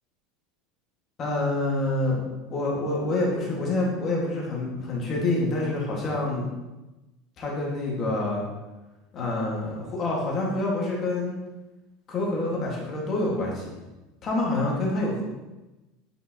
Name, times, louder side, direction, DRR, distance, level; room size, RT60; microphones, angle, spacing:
voice 1, 1.2-2.2 2.5-6.5 7.4-8.4 9.1-11.4 12.1-13.8 14.2-15.2, left 2 dB, 25° left, -3 dB, 1.6 m, -27 dB
8.9 x 5.3 x 2.8 m, 1.1 s
supercardioid pair, 175°, 0 cm